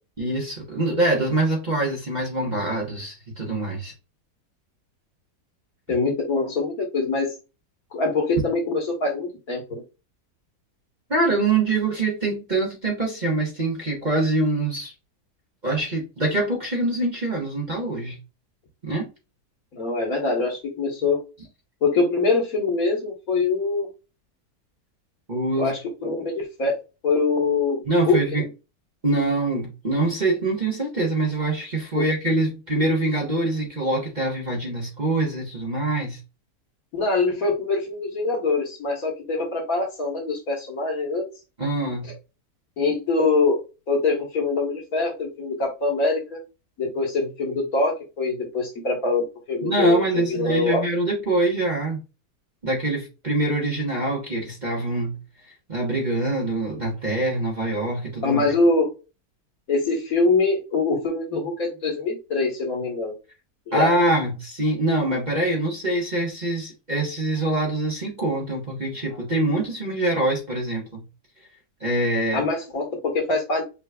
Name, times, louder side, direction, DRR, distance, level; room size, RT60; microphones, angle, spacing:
voice 1, 0.2-3.9 11.1-14.9 15.6-18.2 18.8-19.1 25.3-25.7 27.8-28.4 29.0-36.2 41.6-42.1 49.6-52.0 52.6-55.2 55.7-58.5 63.7-71.0 71.8-72.4, right 2 dB, 30° right, 1.2 m, -24 dB
voice 2, 5.9-7.3 7.9-9.8 19.7-21.2 21.8-23.9 25.6-26.7 27.0-28.5 31.9-32.0 36.9-41.2 42.8-46.4 46.8-50.8 58.2-58.9 59.7-63.1 63.7-63.9 72.3-73.6, left 3 dB, 55° left, 1.9 m, -24 dB
5.9 x 3.0 x 2.3 m
omnidirectional pair, 1.8 m